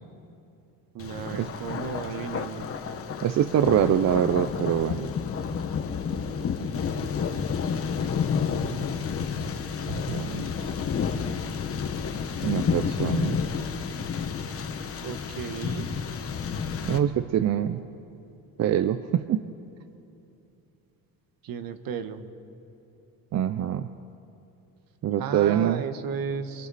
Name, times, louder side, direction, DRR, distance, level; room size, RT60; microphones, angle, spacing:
voice 1, 0.9-2.7 15.0-16.0 21.4-22.2 25.2-26.7, right 7 dB, 70° right, 9 dB, 1.4 m, -34 dB
Thunder, 1.0-17.0, left 6 dB, 40° left, 1.2 m, -30 dB
voice 2, 3.2-5.1 9.9-10.5 12.4-13.4 16.8-17.8 18.6-19.4 23.3-23.9 25.0-25.8, right 10 dB, 45° right, 11 dB, 0.6 m, -24 dB
28.0 x 24.0 x 4.2 m, 2.7 s
cardioid pair, 130°, 36 cm